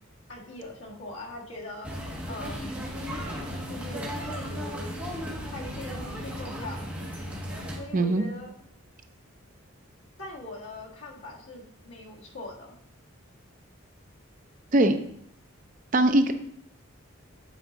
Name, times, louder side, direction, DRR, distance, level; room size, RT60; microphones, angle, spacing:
voice 1, 0.3-1.9 2.3-2.8 3.7-5.0 5.5-6.9 7.8-8.5 10.2-12.7, left 2 dB, 65° left, -3 dB, 1.7 m, -41 dB
sound 1, 1.8-7.8, equal, 5° right, 1.4 m, -35 dB
voice 2, 7.9-8.2 14.7-15.0 15.9-16.3, right 1 dB, 35° right, 8 dB, 0.4 m, -21 dB
8.2 x 4.5 x 3.9 m, 0.68 s
head